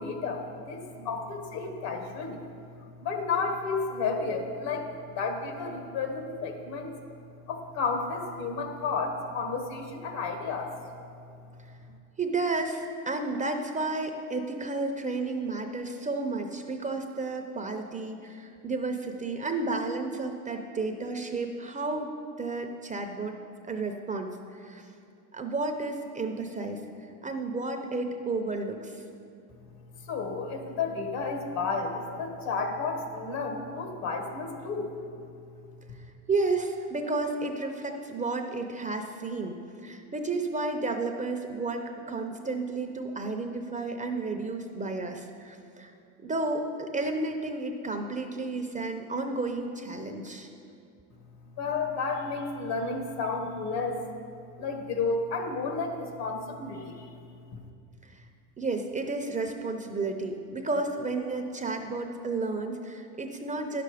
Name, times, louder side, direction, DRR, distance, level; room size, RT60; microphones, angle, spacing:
voice 1, 0.0-2.5 3.0-6.9 7.5-10.7 30.0-34.9 51.6-54.0 54.6-57.2 57.5-57.6, left 4 dB, 65° left, 4 dB, 1.5 m, -32 dB
voice 2, 12.2-22.1 22.4-23.4 23.7-24.9 25.3-26.8 27.2-29.0 36.3-39.6 39.8-45.9 46.2-50.5 58.0-58.2 58.6-63.8, right 3 dB, 15° right, 4 dB, 0.6 m, -32 dB
10.5 x 6.8 x 4.9 m, 2.5 s
supercardioid pair, 105°, 45 cm